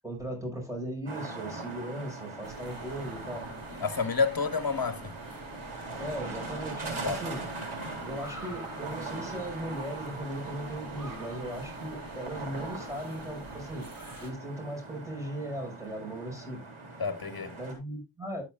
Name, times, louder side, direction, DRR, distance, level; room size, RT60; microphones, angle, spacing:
voice 1, 0.0-3.5 6.0-7.4 8.0-13.9 14.2-16.6 17.6-18.4, right 1 dB, 5° right, 6.1 m, -38 dB
sound 1, 1.1-17.7, right 3 dB, 90° right, 3.8 m, -41 dB
sound 2, 2.4-14.3, right 1 dB, 45° right, 3.3 m, -47 dB
voice 2, 3.8-5.1 7.0-7.2 17.0-17.6, left 5 dB, 45° left, 1.5 m, -29 dB
11.5 x 9.3 x 2.4 m
cardioid pair, 50°, 48 cm